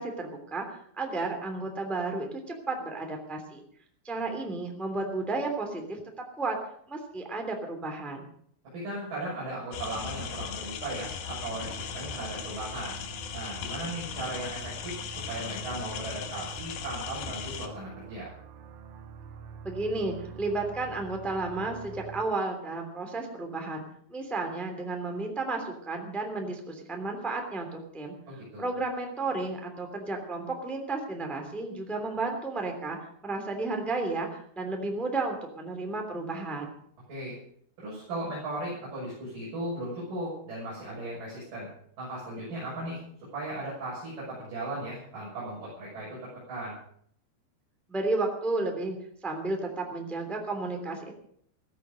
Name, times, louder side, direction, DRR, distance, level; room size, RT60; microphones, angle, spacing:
voice 1, 0.0-3.6 4.0-6.0 6.4-6.6 6.9-8.2 19.6-23.8 24.1-28.1 28.6-33.0 33.2-36.7 47.9-49.0 49.2-51.1, right 3 dB, ahead, 3 dB, 0.8 m, -32 dB
voice 2, 8.7-13.0 13.3-18.3 28.3-28.7 37.1-37.3 37.8-41.7 42.0-43.0 43.3-46.2 46.5-46.8, right 1 dB, 40° right, -7 dB, 8.0 m, -37 dB
sound 1, 9.7-17.7, left 8 dB, 65° left, 2.6 m, -38 dB
sound 2, 11.4-22.2, right 6 dB, 75° right, 4.0 m, -46 dB
16.0 x 15.5 x 5.1 m, 0.64 s
omnidirectional pair, 6.0 m